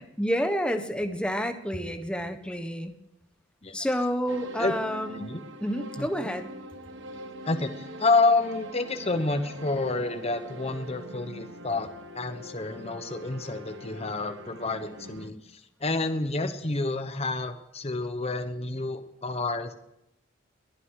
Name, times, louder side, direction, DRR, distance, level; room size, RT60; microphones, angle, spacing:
voice 1, 0.0-2.9 3.7-5.3 5.6-6.5, equal, 5° left, 6 dB, 1.2 m, -29 dB
sound 1, 4.3-15.3, equal, 70° right, 1.4 m, -43 dB
voice 2, 7.4-11.9 12.1-19.7, left 3 dB, 35° left, 8 dB, 1.1 m, -29 dB
22.5 x 9.5 x 4.8 m, 0.81 s
head